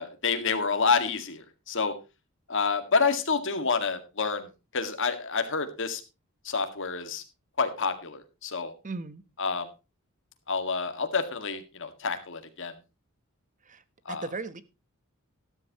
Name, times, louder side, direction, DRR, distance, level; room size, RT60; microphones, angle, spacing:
voice 1, 0.0-1.9 2.5-6.0 6.4-7.2 7.6-8.7 9.4-9.7 10.5-12.7 14.1-14.3, left 5 dB, 60° left, 8 dB, 2.0 m, -28 dB
voice 2, 8.8-9.2 13.7-13.8 14.2-14.6, right 3 dB, 35° right, 14 dB, 1.1 m, -35 dB
13.0 x 13.0 x 3.0 m, 0.28 s
head